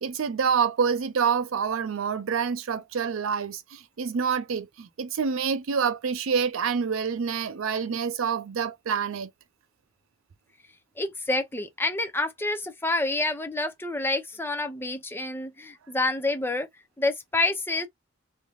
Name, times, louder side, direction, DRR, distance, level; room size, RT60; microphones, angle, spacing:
voice 1, 0.0-9.3, right 6 dB, 65° right, 0.5 m, -27 dB
voice 2, 11.0-16.7 17.0-17.9, left 2 dB, 10° left, 0.6 m, -28 dB
3.3 x 2.7 x 2.3 m
head